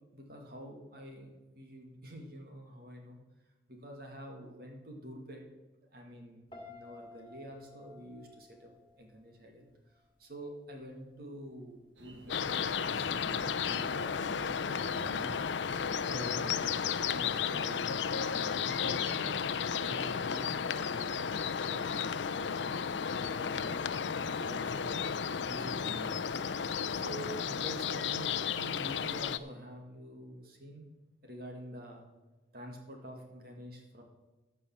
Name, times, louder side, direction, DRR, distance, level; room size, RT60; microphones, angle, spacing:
voice 1, 0.0-3.2 3.7-5.4 5.9-8.7 9.0-9.7 10.2-15.4 16.1-16.8 17.1-19.3 19.8-22.5 23.2-25.0 25.5-26.1 26.9-30.9 31.2-32.1 32.5-34.0, equal, 55° right, 2 dB, 2.1 m, -47 dB
Piano, 6.5-9.6 9.9-10.3, left 3 dB, 25° left, 2.2 m, -53 dB
sound 1, 12.0-17.4, right 1 dB, 90° right, 1.8 m, -53 dB
sound 2, 12.3-29.4, left 6 dB, 80° left, 0.5 m, -33 dB
15.0 x 5.6 x 7.2 m, 1.1 s
head